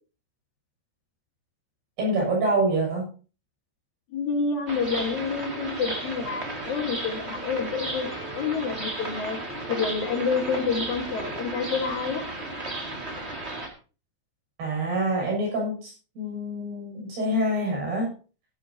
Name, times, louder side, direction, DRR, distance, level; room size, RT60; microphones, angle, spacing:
voice 1, 2.0-3.1 14.6-18.1, right 1 dB, 65° right, -1 dB, 9.0 m, -26 dB
voice 2, 4.1-8.1 8.3-9.4 9.7-12.2, left 5 dB, 55° left, 3 dB, 2.5 m, -28 dB
sound 1, 4.7-13.7, right 2 dB, 25° right, 1.3 m, -34 dB
17.0 x 11.5 x 2.9 m, 0.35 s
omnidirectional pair, 5.1 m